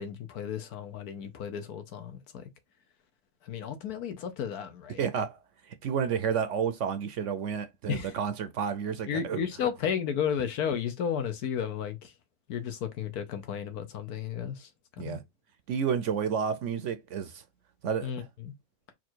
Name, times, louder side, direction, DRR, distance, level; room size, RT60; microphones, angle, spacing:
voice 1, 0.0-2.5 3.4-5.0 7.9-8.2 9.1-12.1 12.5-14.7 15.0-15.2 18.0-18.5, left 8 dB, 80° left, 1.4 m, -33 dB
voice 2, 5.0-5.4 5.7-9.4 15.0-15.2 15.7-17.4 17.8-18.3, right 7 dB, 65° right, 0.8 m, -30 dB
4.4 x 2.5 x 4.4 m
omnidirectional pair, 1.6 m